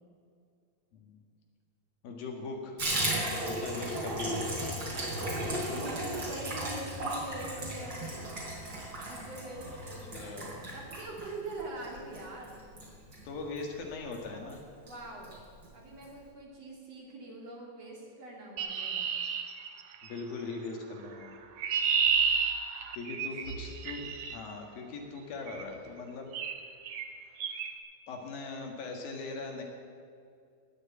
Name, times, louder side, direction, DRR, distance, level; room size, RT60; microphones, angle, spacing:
voice 1, 2.0-2.9 3.4-4.4 10.1-10.7 13.2-14.6 20.0-21.4 22.9-24.1 24.3-26.3 28.1-29.6, left 3 dB, 70° left, 1 dB, 3.5 m, -40 dB
Water tap faucet / Bathtub (filling or washing), 2.8-13.7 14.1-14.2 14.5-14.6 14.9-15.4 15.6-15.7 16.0-16.1, right 1 dB, 30° right, 4.4 m, -36 dB
voice 2, 5.7-8.2 9.0-10.2 10.7-12.5 14.8-15.3 15.7-19.1, right 2 dB, 45° right, -2 dB, 3.2 m, -43 dB
Chirp tweet, 18.6-20.2 21.2-24.4 25.5-25.7 26.3-26.6 26.8-27.1 27.4-27.7, right 6 dB, 90° right, 1.3 m, -31 dB
19.5 x 6.6 x 8.7 m, 2.3 s
omnidirectional pair, 4.3 m